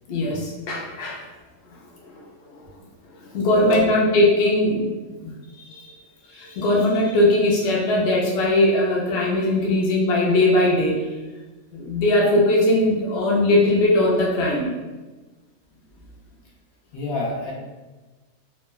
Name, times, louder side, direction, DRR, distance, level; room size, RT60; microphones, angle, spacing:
voice 1, 0.1-1.2 2.1-2.2 3.3-4.8 5.2-5.3 5.7-5.9 6.3-11.0 11.7-14.7, left 1 dB, 60° left, -3 dB, 0.7 m, -20 dB
voice 2, 3.5-3.9 16.9-17.5, left 3 dB, 80° left, -4 dB, 1.1 m, -27 dB
3.0 x 2.2 x 2.2 m, 1.2 s
omnidirectional pair, 1.5 m